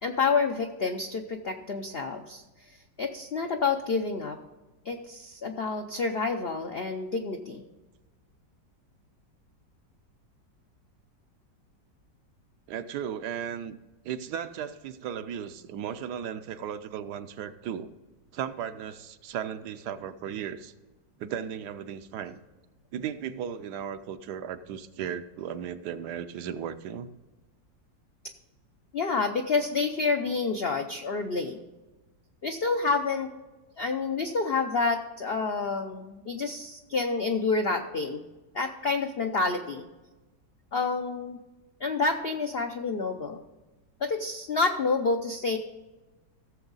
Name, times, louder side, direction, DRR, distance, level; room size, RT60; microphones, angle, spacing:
voice 1, 0.0-2.4 3.0-4.4 4.8-7.6 28.9-31.6 32.4-33.3 33.8-38.2 38.5-39.9 40.7-41.4 41.8-43.4 44.0-45.6, left 4 dB, 70° left, 5 dB, 0.5 m, -28 dB
voice 2, 12.7-13.8 14.0-17.9 18.3-20.7 21.2-22.4 22.9-27.1, right 9 dB, 75° right, 11 dB, 1.1 m, -36 dB
16.0 x 7.1 x 4.0 m, 1.2 s
omnidirectional pair, 1.9 m